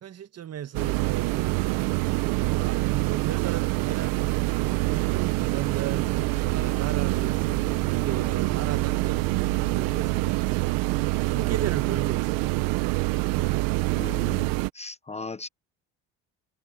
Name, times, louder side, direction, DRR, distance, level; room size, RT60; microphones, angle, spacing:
voice 1, 0.0-1.8 2.4-4.4 4.7-6.1 6.5-7.4 7.8-9.3 9.5-10.8 11.2-12.8, right 9 dB, 45° right, 1.7 m, -36 dB
sound 1, 0.7-14.7, right 22 dB, 80° right, 1.2 m, -25 dB
sound 2, 4.8-10.3, left 6 dB, 35° left, 4.5 m, -47 dB
voice 2, 13.9-15.5, left 3 dB, 20° left, 0.9 m, -38 dB
supercardioid pair, 80°, 34 cm